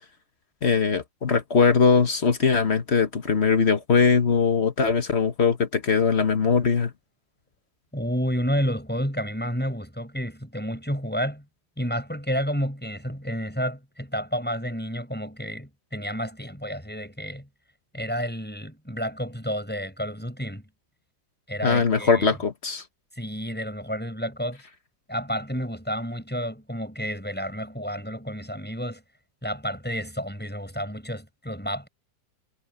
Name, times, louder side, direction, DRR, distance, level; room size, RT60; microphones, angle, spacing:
voice 1, 0.6-6.9 21.6-22.8, left 5 dB, 40° left, 1.5 m, -21 dB
voice 2, 7.9-11.4 11.8-17.5 17.9-20.6 21.5-22.3 23.2-24.6 25.1-29.0 29.4-31.9, equal, 5° left, 7.3 m, -30 dB
omnidirectional pair, 2.0 m